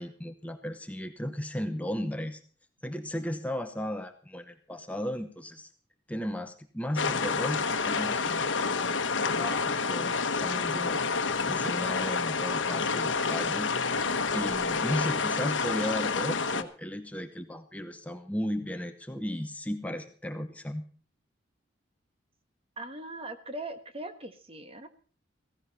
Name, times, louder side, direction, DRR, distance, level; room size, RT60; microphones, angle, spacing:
voice 1, 0.0-2.4 2.8-5.7 6.1-13.7 14.3-20.9, equal, 10° left, 7 dB, 0.9 m, -35 dB
sound 1, 7.0-16.6, left 4 dB, 90° left, 1.2 m, -29 dB
voice 2, 22.8-24.9, right 2 dB, 30° right, 8 dB, 1.5 m, -40 dB
16.0 x 15.5 x 4.2 m, 0.40 s
head